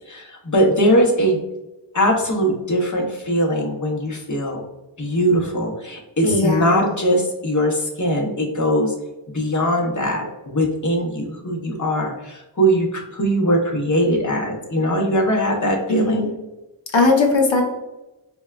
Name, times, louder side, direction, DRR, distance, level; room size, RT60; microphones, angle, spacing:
voice 1, 0.1-1.4 1.9-4.6 5.0-8.9 9.3-16.2, equal, 40° left, 0 dB, 0.8 m, -21 dB
voice 2, 6.2-6.9 15.9-16.3 16.9-17.6, left 3 dB, 85° left, 1 dB, 0.8 m, -18 dB
4.4 x 2.2 x 2.3 m, 1.0 s
wide cardioid pair, 50°, 45 cm